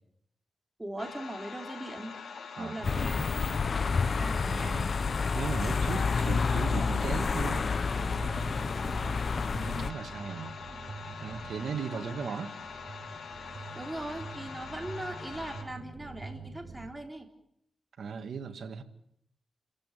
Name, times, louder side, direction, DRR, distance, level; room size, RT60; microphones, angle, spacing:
voice 1, 0.8-2.2 2.6-3.2 3.8-4.9 11.9-12.0 13.7-17.3, right 1 dB, 15° right, 3 dB, 4.0 m, -40 dB
sound 1, 1.0-15.6, left 5 dB, 90° left, 4.4 m, -44 dB
voice 2, 2.5-3.1 4.4-4.9 5.3-8.8 9.6-10.6 11.2-12.6 18.0-18.8, right 6 dB, 80° right, 6 dB, 2.2 m, -38 dB
sound 2, 2.8-9.9, left 5 dB, 55° left, 0.9 m, -29 dB
sound 3, 6.2-16.9, right 4 dB, 35° right, 5.9 m, -46 dB
29.5 x 15.5 x 9.3 m, 0.72 s
cardioid pair, 85°, 0 cm